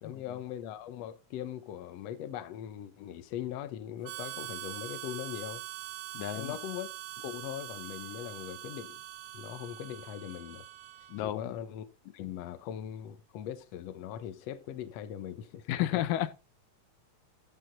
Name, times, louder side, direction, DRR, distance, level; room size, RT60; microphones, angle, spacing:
voice 1, 0.0-5.6 6.4-9.0 9.3-10.7 11.2-16.0, left 10 dB, 65° left, 1.8 m, -40 dB
Harmonica, 4.0-11.3, right 14 dB, 90° right, 2.3 m, -43 dB
voice 2, 6.1-6.6 11.1-11.5 15.7-16.3, left 13 dB, 85° left, 2.3 m, -32 dB
14.0 x 5.6 x 4.0 m
omnidirectional pair, 3.8 m